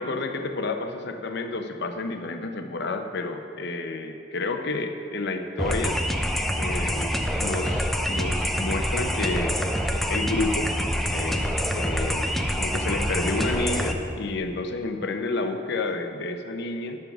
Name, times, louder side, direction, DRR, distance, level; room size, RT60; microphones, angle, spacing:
voice 1, 0.0-6.0 6.5-9.6 10.1-10.7 11.1-17.0, left 3 dB, 60° left, 6 dB, 0.7 m, -30 dB
sound 1, 5.6-13.9, equal, ahead, 0.5 m, -26 dB
9.5 x 7.0 x 6.0 m, 2.6 s
head